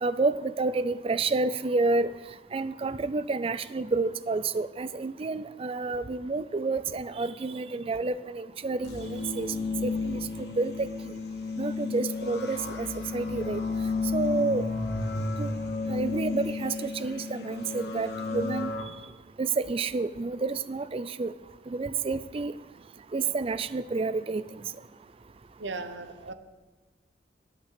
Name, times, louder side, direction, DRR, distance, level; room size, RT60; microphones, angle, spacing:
voice 1, 0.0-2.1 2.5-9.5 9.8-11.2 11.6-13.6 14.1-14.7 15.4-15.5 15.9-18.7 19.4-21.3 21.7-22.5 23.1-24.6, right 3 dB, 30° right, 15 dB, 0.4 m, -29 dB
sound 1, 8.8-18.8, left 3 dB, 65° left, 1.3 m, -32 dB
voice 2, 25.6-26.3, right 3 dB, 80° right, 10 dB, 0.9 m, -37 dB
11.0 x 6.0 x 8.3 m, 1.3 s
head